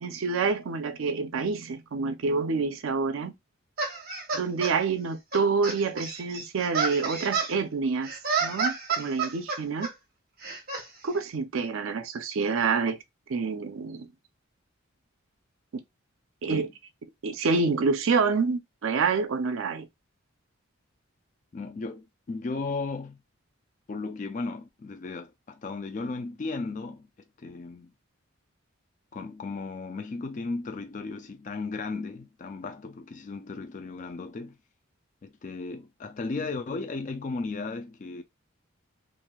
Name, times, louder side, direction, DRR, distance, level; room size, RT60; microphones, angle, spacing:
voice 1, 0.0-3.3 4.3-8.1 8.4-9.9 11.0-13.0 13.3-14.1 16.4-16.7 17.2-19.9, right 4 dB, 70° right, 0.4 m, -27 dB
sound 1, 3.8-4.7 5.3-7.5 8.0-9.9 10.4-10.8, right 5 dB, 45° right, 0.9 m, -30 dB
voice 2, 21.5-23.2 23.9-27.1 27.4-27.9 29.1-34.6 35.2-38.2, left 3 dB, 35° left, 0.3 m, -35 dB
3.1 x 2.5 x 2.2 m
head